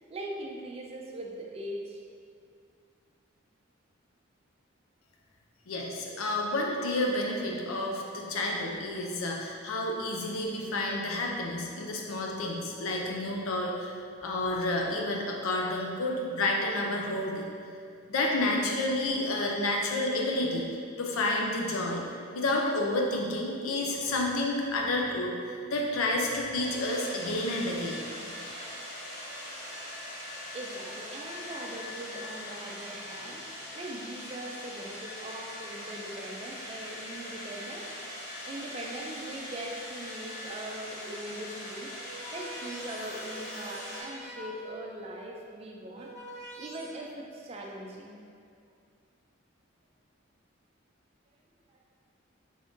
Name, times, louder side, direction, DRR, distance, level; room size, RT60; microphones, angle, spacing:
voice 1, 0.0-2.0 30.0-30.2 30.5-38.0 38.4-41.9 42.3-46.1 46.6-48.2 51.7-51.8, right 1 dB, 30° right, 0 dB, 0.3 m, -41 dB
voice 2, 5.7-13.9 14.2-17.5 18.1-20.7 21.0-22.0 22.3-28.0, left 2 dB, 90° left, 0 dB, 0.5 m, -30 dB
sound 1, 26.6-44.0, left 1 dB, 55° left, 0.9 m, -41 dB
sound 2, 41.8-44.9 45.7-46.8, right 1 dB, 5° left, 0.7 m, -46 dB
3.5 x 2.6 x 3.5 m, 2.3 s
head